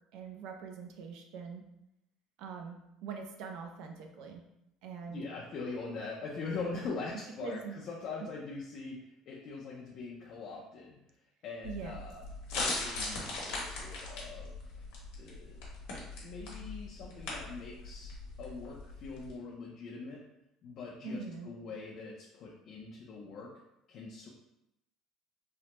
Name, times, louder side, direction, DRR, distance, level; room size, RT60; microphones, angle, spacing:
voice 1, 0.1-1.6 2.4-4.5 4.8-5.2 7.4-7.7 11.6-12.0 21.0-21.5, right 5 dB, 60° right, 3 dB, 0.3 m, -43 dB
voice 2, 5.1-9.0 9.3-11.0 11.4-14.8 15.2-15.7 16.2-20.2 20.6-23.5 23.9-24.3, left 4 dB, 40° left, -4 dB, 0.4 m, -42 dB
sound 1, 11.6-19.3, left 2 dB, 85° left, 0.9 m, -40 dB
3.1 x 2.0 x 2.9 m, 0.84 s
cardioid pair, 180°, 0 cm